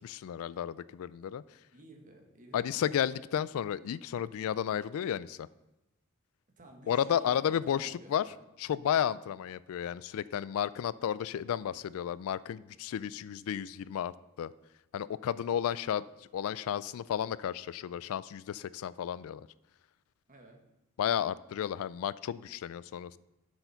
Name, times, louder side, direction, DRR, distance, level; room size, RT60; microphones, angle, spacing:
voice 1, 0.0-1.4 2.5-5.5 6.9-8.2 8.6-14.1 14.4-14.5 14.9-19.5 21.0-23.2, left 9 dB, 70° left, 19 dB, 0.3 m, -32 dB
voice 2, 1.7-2.9 6.6-8.4 20.3-20.6, right 2 dB, 40° right, 3 dB, 1.5 m, -53 dB
7.8 x 7.0 x 5.7 m, 0.95 s
head